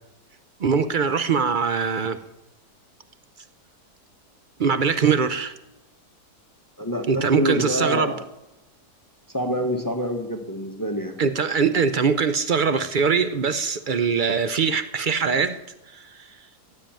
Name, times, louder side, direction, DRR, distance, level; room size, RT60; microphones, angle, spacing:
voice 1, 0.6-2.2 4.6-5.5 7.1-8.1 11.2-15.6 15.9-16.0, right 5 dB, 60° right, 0.5 m, -22 dB
voice 2, 6.8-8.2 9.3-11.2, equal, 15° left, 1.2 m, -26 dB
15.5 x 7.7 x 9.0 m
omnidirectional pair, 1.8 m